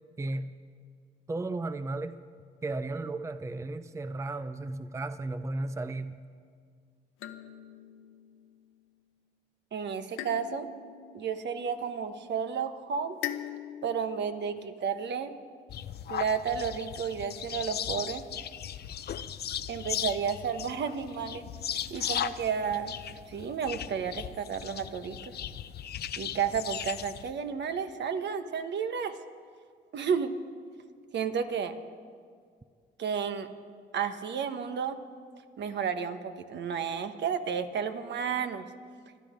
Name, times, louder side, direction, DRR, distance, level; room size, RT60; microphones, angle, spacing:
voice 1, 0.2-0.6 1.3-2.2 2.6-6.2, right 2 dB, 15° right, 12 dB, 0.5 m, -34 dB
sound 1, 7.2-8.8 10.2-12.3 13.2-13.9, left 10 dB, 85° left, 0.9 m, -41 dB
voice 2, 9.7-10.7 11.1-13.2 13.8-15.3 16.1-18.2 19.7-21.4 21.9-22.9 23.3-25.3 26.2-29.2 29.9-30.3 31.1-31.8 33.0-33.5 33.9-35.0 35.6-38.6, right 6 dB, 60° right, 9 dB, 1.2 m, -32 dB
sound 2, 15.7-27.3, left 9 dB, 55° left, 0.6 m, -37 dB
26.5 x 10.0 x 5.2 m, 2.1 s
cardioid pair, 90°, 20 cm